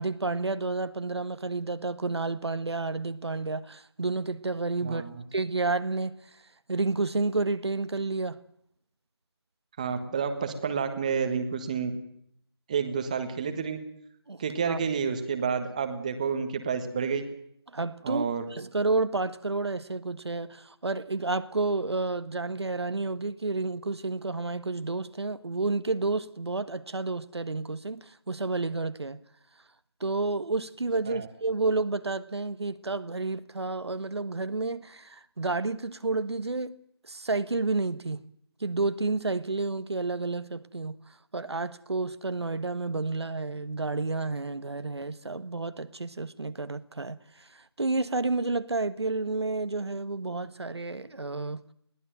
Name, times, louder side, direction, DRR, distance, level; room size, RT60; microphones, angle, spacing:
voice 1, 0.0-5.0 5.3-6.2 6.7-8.4 14.3-14.8 17.7-29.2 30.0-36.8 37.1-38.2 38.6-41.0 41.3-51.6, right 3 dB, 75° right, 1.4 m, -30 dB
voice 2, 4.8-5.2 9.8-11.9 12.7-13.8 14.4-17.2 18.0-18.4 31.1-31.3, right 6 dB, 15° right, 1.4 m, -29 dB
22.0 x 16.5 x 9.2 m
figure-of-eight pair, 170°, 14 cm